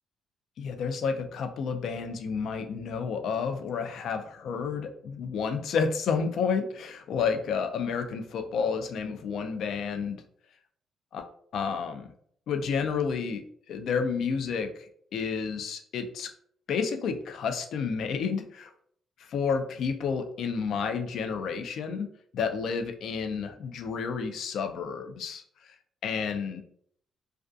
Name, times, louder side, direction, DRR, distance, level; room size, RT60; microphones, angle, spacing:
voice 1, 0.6-10.2 11.1-11.2 11.5-12.1 12.5-16.3 16.7-18.7 19.3-22.1 22.3-25.4 26.0-26.6, left 6 dB, 70° left, 7 dB, 0.3 m, -30 dB
2.3 x 2.2 x 2.5 m, 0.63 s
cardioid pair, 90°, 0 cm